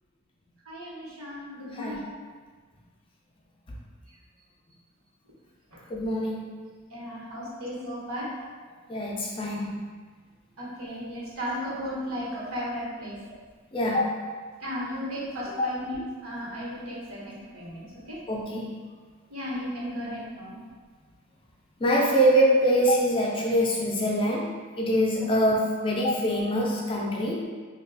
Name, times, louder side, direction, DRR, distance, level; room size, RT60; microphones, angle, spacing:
voice 1, 0.6-2.0 5.7-5.8 6.9-8.4 10.6-13.2 14.6-18.2 19.3-20.5, equal, 85° right, -7 dB, 1.1 m, -35 dB
voice 2, 1.7-2.1 5.9-6.4 8.9-9.8 13.7-14.2 18.3-18.7 21.8-27.5, equal, 25° left, -3 dB, 0.4 m, -24 dB
2.7 x 2.3 x 3.9 m, 1.5 s
head